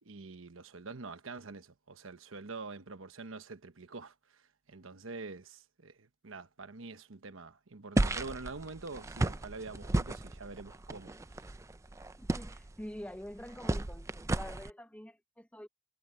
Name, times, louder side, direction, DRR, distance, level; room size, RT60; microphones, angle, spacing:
voice 1, 0.0-11.5, right 3 dB, 90° right, 1.1 m, -46 dB
sound 1, 8.0-14.7, right 2 dB, 15° right, 0.4 m, -34 dB
voice 2, 12.2-15.7, left 1 dB, 5° left, 0.9 m, -46 dB
head